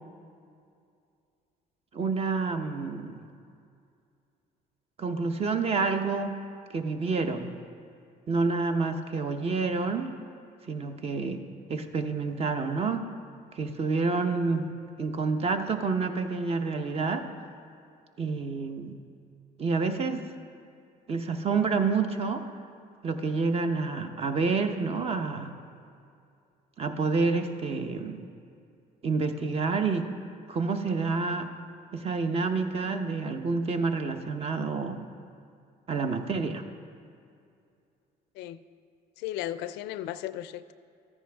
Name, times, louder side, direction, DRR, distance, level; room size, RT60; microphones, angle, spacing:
voice 1, 1.9-3.2 5.0-6.3 6.7-7.6 8.3-10.1 10.7-11.4 11.7-13.0 13.5-14.7 15.0-17.3 18.2-19.0 19.6-20.3 21.1-22.4 23.0-25.5 26.8-28.2 29.0-30.1 30.5-31.5 31.9-35.0 35.9-36.6, right 4 dB, 35° right, 7 dB, 0.8 m, -28 dB
voice 2, 39.2-40.7, left 13 dB, 90° left, 14 dB, 0.4 m, -35 dB
13.5 x 10.0 x 3.5 m, 2.4 s
cardioid pair, 110°, 17 cm